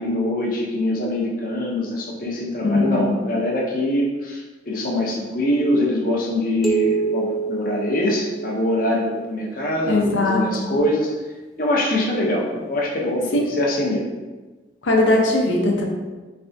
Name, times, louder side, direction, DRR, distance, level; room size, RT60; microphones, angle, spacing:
voice 1, 0.0-11.1 11.6-14.1, left 1 dB, 45° left, -2 dB, 0.7 m, -23 dB
voice 2, 2.6-3.1 9.8-10.8 13.3-13.4 14.8-15.9, left 2 dB, 85° left, 0 dB, 0.6 m, -20 dB
sound 1, 6.6-9.0, right 5 dB, ahead, 0.3 m, -26 dB
3.3 x 3.3 x 2.6 m, 1.3 s
head